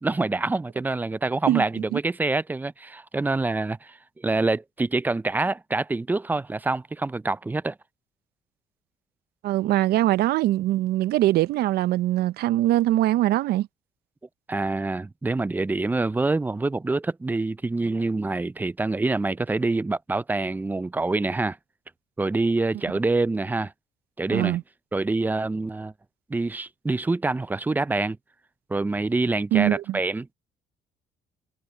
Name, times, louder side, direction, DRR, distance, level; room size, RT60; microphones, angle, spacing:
voice 1, 0.0-7.8 14.5-21.6 22.2-23.7 24.2-24.6 24.9-25.9 26.3-28.2 28.7-30.3, right 3 dB, 10° right, 0.4 m, -26 dB
voice 2, 9.4-13.7 24.3-24.6 29.5-30.0, right 15 dB, 70° right, 0.5 m, -22 dB
cardioid pair, 110°, 17 cm